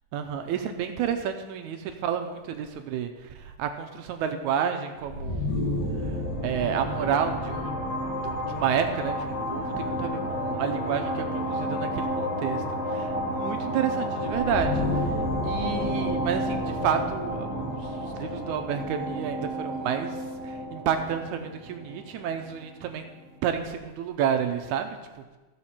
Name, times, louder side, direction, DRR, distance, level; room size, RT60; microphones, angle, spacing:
voice 1, 0.1-5.5 6.0-7.7 8.2-23.1 23.4-24.9 25.2-25.3, right 8 dB, 75° right, 6 dB, 1.8 m, -30 dB
sound 1, 5.0-22.7, equal, 50° left, 2.4 m, -30 dB
15.0 x 7.2 x 4.3 m, 1.2 s
omnidirectional pair, 3.9 m